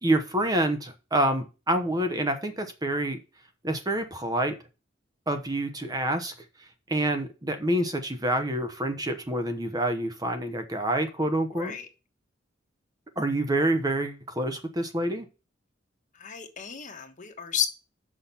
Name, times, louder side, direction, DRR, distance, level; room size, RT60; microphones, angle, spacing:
voice 1, 0.0-3.2 3.6-4.6 5.3-6.3 6.9-11.7 13.2-15.2, right 1 dB, 20° right, 7 dB, 1.0 m, -27 dB
voice 2, 11.5-11.9 16.1-17.7, left 9 dB, 40° left, 6 dB, 1.3 m, -32 dB
6.3 x 5.8 x 6.9 m, 0.31 s
head